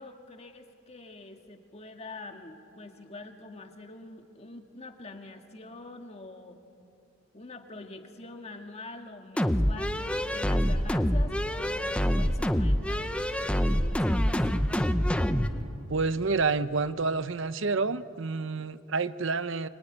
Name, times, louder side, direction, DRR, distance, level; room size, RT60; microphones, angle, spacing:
voice 1, 0.0-6.6 7.3-14.7, left 2 dB, 30° left, 5 dB, 1.8 m, -45 dB
sound 1, 9.4-15.5, equal, 5° left, 0.8 m, -26 dB
voice 2, 15.9-19.7, right 4 dB, 65° right, 14 dB, 0.7 m, -28 dB
24.5 x 23.5 x 9.8 m, 2.6 s
head